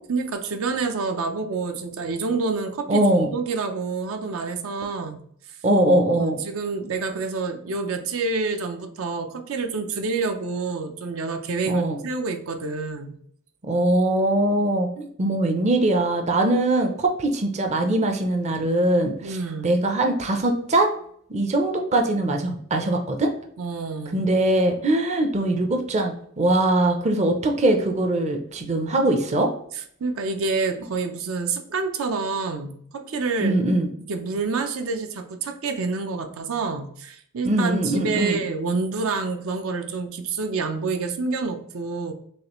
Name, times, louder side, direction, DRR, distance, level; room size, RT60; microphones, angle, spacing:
voice 1, 0.1-3.0 3.3-5.2 5.5-5.6 6.1-13.2 19.2-19.7 23.6-24.2 30.0-33.6 34.0-42.1, right 4 dB, 75° right, 6 dB, 0.6 m, -28 dB
voice 2, 2.9-3.3 5.6-6.4 11.7-12.0 13.6-19.4 19.6-20.9 21.3-23.3 24.1-29.5 33.4-33.9 37.4-38.4, right 1 dB, 35° right, 4 dB, 0.5 m, -21 dB
6.3 x 2.4 x 3.0 m, 0.63 s
head